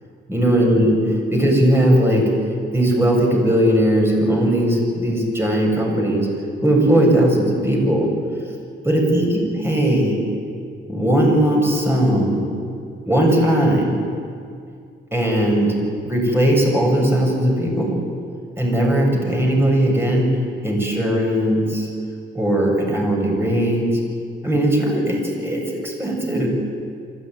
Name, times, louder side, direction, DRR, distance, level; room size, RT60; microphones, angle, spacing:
voice 1, 0.3-1.0 1.3-2.3 2.7-6.3 6.6-8.1 8.8-10.2 10.9-12.4 13.1-14.0 15.1-15.8 16.0-18.0 18.6-20.3 20.6-21.9 22.3-23.9 24.4-26.5, right 1 dB, 10° right, 0 dB, 7.6 m, -18 dB
25.0 x 15.0 x 9.6 m, 2.3 s
cardioid pair, 90°, 20 cm